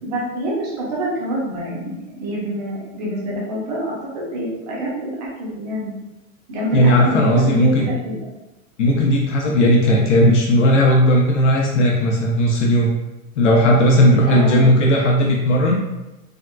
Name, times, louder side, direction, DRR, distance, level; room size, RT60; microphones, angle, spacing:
voice 1, 0.0-6.0 6.5-8.2 14.3-14.7, right 1 dB, 30° right, -5 dB, 0.5 m, -26 dB
voice 2, 6.7-7.9 8.8-12.9 13.4-15.8, equal, 55° left, -1 dB, 0.5 m, -15 dB
3.5 x 2.3 x 2.2 m, 0.99 s
supercardioid pair, 180°, 43 cm